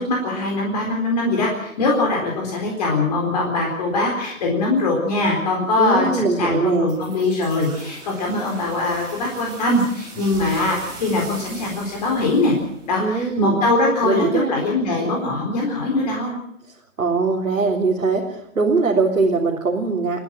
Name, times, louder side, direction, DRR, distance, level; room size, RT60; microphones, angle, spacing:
voice 1, 0.0-12.5 12.9-16.3, left 2 dB, 30° left, 0 dB, 4.2 m, -22 dB
voice 2, 5.8-6.9 13.0-13.6 14.0-14.5 16.7-20.2, right 4 dB, 75° right, -2 dB, 3.9 m, -21 dB
sound 1, 6.9-13.5, right 3 dB, 10° right, 3.5 m, -40 dB
29.0 x 10.5 x 9.1 m, 0.78 s
hypercardioid pair, 160°, 43 cm